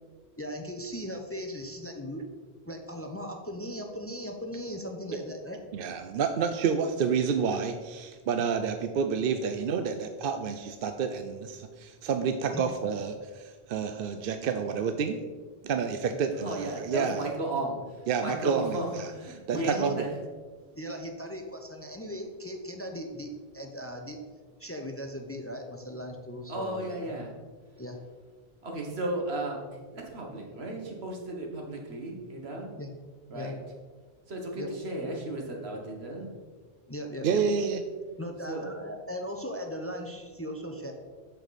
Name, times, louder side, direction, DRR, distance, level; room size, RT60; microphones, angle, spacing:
voice 1, 0.4-2.2 2.7-5.6 8.4-8.5 12.5-12.7 19.5-20.0 20.8-24.2 24.6-27.1 27.8-28.0 32.8-33.0 33.3-33.5 34.6-34.7 36.9-37.4 38.2-40.9, equal, 15° left, 4 dB, 0.6 m, -38 dB
voice 2, 5.7-15.2 15.6-17.2 18.1-19.1 19.5-20.1 37.2-37.8, right 6 dB, 65° right, 8 dB, 0.7 m, -29 dB
voice 3, 16.4-20.1 26.5-27.3 28.6-32.7 33.3-33.5 34.3-36.3 38.5-38.7, right 1 dB, 90° right, 0 dB, 1.8 m, -35 dB
7.9 x 6.8 x 4.1 m, 1.5 s
omnidirectional pair, 1.0 m